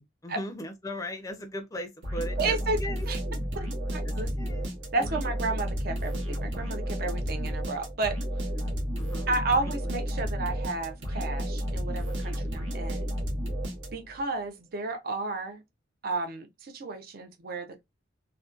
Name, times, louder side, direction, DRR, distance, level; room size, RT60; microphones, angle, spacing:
voice 1, 0.0-3.1 4.0-5.3 8.5-9.3 9.6-9.7, left 1 dB, 15° left, 0.4 m, -39 dB
sound 1, 2.0-14.2, equal, 75° right, 0.9 m, -32 dB
voice 2, 2.4-2.8 3.1-3.2 3.6-4.3 4.9-8.2 9.3-13.1 13.9-15.6 16.0-17.8, right 3 dB, 50° right, 0.5 m, -32 dB
2.6 x 2.1 x 2.3 m
head